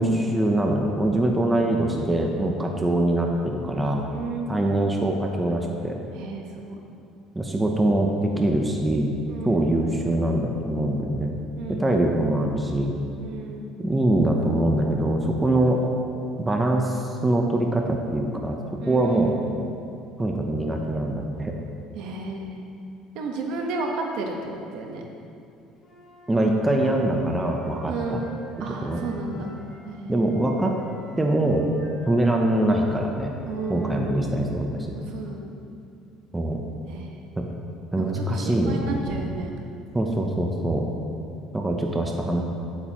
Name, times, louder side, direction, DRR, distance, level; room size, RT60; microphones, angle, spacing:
voice 1, 0.0-4.0 4.5-6.0 7.3-9.2 9.4-11.4 11.7-12.9 13.8-15.8 16.4-19.4 20.2-21.5 26.3-28.2 28.8-29.0 29.4-29.5 30.1-30.7 31.2-31.7 32.1-33.3 33.7-34.9 36.3-36.6 37.4-37.5 37.9-39.0 39.9-40.8 41.5-42.4, right 1 dB, 10° right, 1 dB, 0.7 m, -23 dB
voice 2, 4.0-4.5 6.1-6.7 9.3-9.7 11.6-12.2 13.2-13.7 18.8-19.6 21.9-22.6 23.1-24.4 24.7-25.0 27.9-29.5 29.8-30.2 33.5-34.2 34.9-35.5 36.9-37.3 38.0-39.5, right 3 dB, 70° right, 1 dB, 1.2 m, -33 dB
Wind instrument woodwind instrument, 25.8-29.8 30.2-34.4, left 2 dB, 30° left, 1.8 m, -47 dB
8.9 x 8.5 x 3.0 m, 2.5 s
cardioid pair, 135°, 0 cm